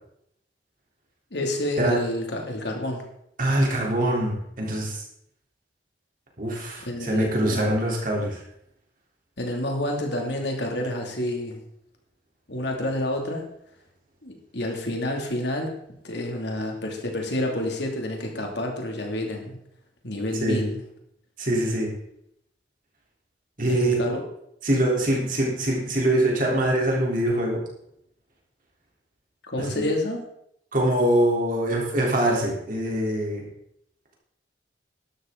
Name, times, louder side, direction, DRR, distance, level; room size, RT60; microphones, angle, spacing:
voice 1, 1.3-3.0 6.8-7.7 9.4-11.6 12.5-13.5 14.2-15.8 16.0-19.6 20.0-20.8 23.6-24.2 29.4-30.2, left 1 dB, 65° left, 1 dB, 2.6 m, -29 dB
voice 2, 3.4-5.0 6.4-8.4 20.4-20.6 21.4-21.9 23.6-24.0 24.6-27.6 29.6-29.9 30.7-33.4, right 1 dB, 45° right, -2 dB, 3.7 m, -24 dB
12.5 x 12.0 x 3.9 m, 0.76 s
head